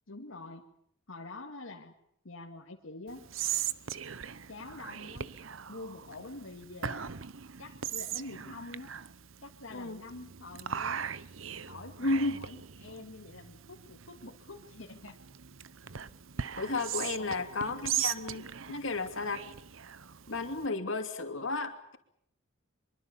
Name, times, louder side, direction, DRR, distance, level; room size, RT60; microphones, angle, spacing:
voice 1, 0.1-0.7 1.1-1.9 2.2-3.3 4.5-5.3 5.7-7.1 7.6-8.9 9.4-11.1 11.7-15.2 15.9-16.0 17.2-17.5, left 2 dB, 85° left, 1 dB, 2.2 m, -46 dB
Whispering, 3.1-20.7, right 9 dB, 75° right, 0.9 m, -39 dB
voice 2, 12.0-12.3 16.5-19.5 20.3-22.0, left 3 dB, 70° left, 6 dB, 2.8 m, -33 dB
24.5 x 24.0 x 7.2 m, 0.69 s
head